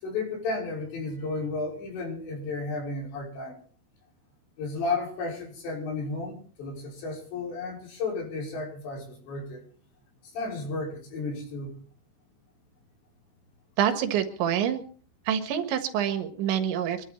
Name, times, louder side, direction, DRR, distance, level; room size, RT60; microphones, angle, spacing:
voice 1, 0.0-3.6 4.6-9.6 10.3-11.7, left 3 dB, 70° left, 0 dB, 7.8 m, -33 dB
voice 2, 13.8-14.8 15.3-17.1, right 9 dB, 80° right, 8 dB, 3.7 m, -26 dB
24.5 x 12.0 x 4.3 m, 0.43 s
omnidirectional pair, 5.3 m